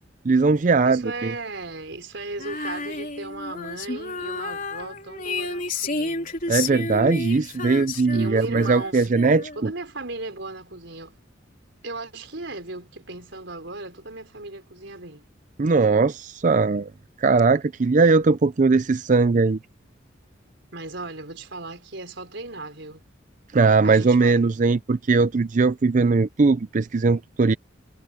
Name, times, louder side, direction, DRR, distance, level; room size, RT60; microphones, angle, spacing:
voice 1, 0.2-1.3 6.5-9.7 15.6-16.9 17.2-19.6 23.5-27.5, right 4 dB, 40° right, 0.4 m, -20 dB
voice 2, 0.8-6.3 8.1-9.2 9.5-11.2 11.8-15.2 20.7-23.0 23.8-24.4, right 2 dB, 65° right, 4.9 m, -36 dB
Female singing, 2.4-9.7, left 3 dB, 45° left, 4.0 m, -31 dB
head